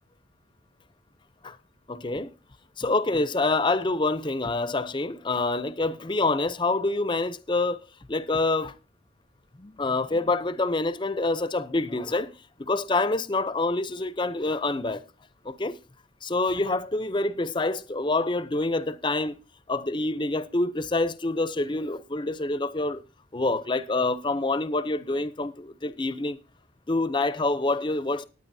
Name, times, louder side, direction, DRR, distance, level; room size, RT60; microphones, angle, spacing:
voice 1, 1.9-2.3 2.8-7.8 8.1-8.7 9.6-12.3 12.6-15.0 15.4-15.7 16.2-19.4 19.7-23.0 23.3-26.4 26.9-28.2, left 2 dB, 25° left, 0.6 m, -26 dB
19.0 x 9.5 x 2.7 m
head